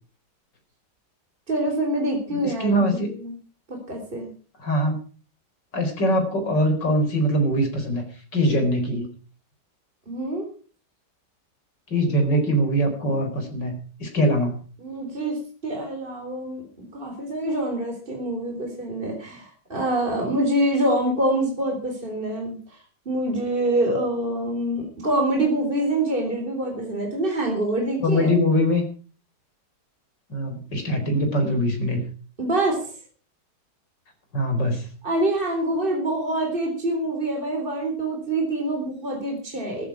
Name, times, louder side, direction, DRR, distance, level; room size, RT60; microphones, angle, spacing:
voice 1, 1.5-3.4 3.7-4.3 10.1-10.5 14.8-22.6 23.1-28.3 32.4-32.9 35.0-39.8, right 1 dB, 30° right, 2 dB, 4.0 m, -25 dB
voice 2, 2.3-3.1 4.6-5.0 5.7-8.0 8.3-9.1 11.9-14.6 28.0-28.8 30.3-32.0 34.3-34.9, equal, 75° left, 5 dB, 5.0 m, -22 dB
15.0 x 14.0 x 4.7 m, 0.39 s
omnidirectional pair, 1.9 m